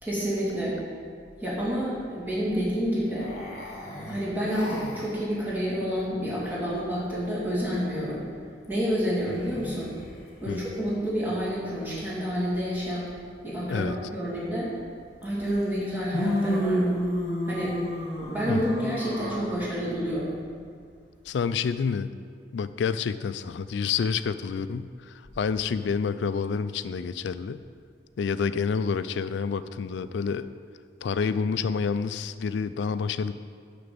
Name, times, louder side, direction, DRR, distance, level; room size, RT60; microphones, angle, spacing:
voice 1, 0.0-0.8 1.4-3.3 4.1-8.2 8.7-9.9 10.4-13.1 13.4-14.7 15.2-16.9 17.5-17.7 18.2-20.4, equal, 10° right, -8 dB, 2.3 m, -29 dB
sound 1, 3.2-5.1 9.2-10.2 15.2-15.3 16.1-19.5, equal, 35° left, 1.9 m, -30 dB
voice 2, 21.3-22.1 22.5-27.6 28.2-30.5 31.0-33.3, left 5 dB, 75° left, 13 dB, 0.3 m, -28 dB
6.6 x 6.0 x 7.0 m, 2.1 s
head